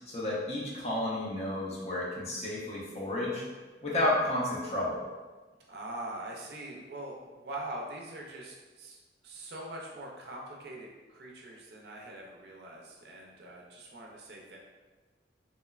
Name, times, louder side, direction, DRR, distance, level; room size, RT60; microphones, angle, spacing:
voice 1, 0.1-3.4 3.8-5.0, left 1 dB, 35° left, -5 dB, 0.5 m, -31 dB
voice 2, 5.7-9.0 9.2-14.6, right 1 dB, 65° right, -2 dB, 0.5 m, -43 dB
2.9 x 2.0 x 2.3 m, 1.3 s
head